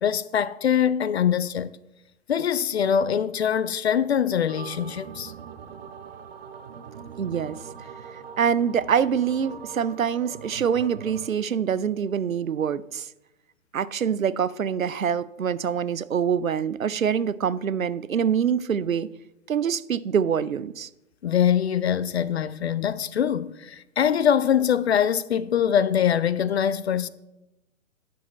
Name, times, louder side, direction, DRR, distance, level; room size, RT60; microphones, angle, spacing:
voice 1, 0.0-1.7 2.3-5.3 21.2-27.1, left 8 dB, 55° left, 0.5 m, -23 dB
sound 1, 4.5-11.3, right 7 dB, 50° right, 0.7 m, -41 dB
voice 2, 7.2-7.6 8.1-13.1 13.7-19.1 19.5-20.9, right 7 dB, 85° right, 0.5 m, -25 dB
10.0 x 6.5 x 4.1 m
figure-of-eight pair, 120°, 40 cm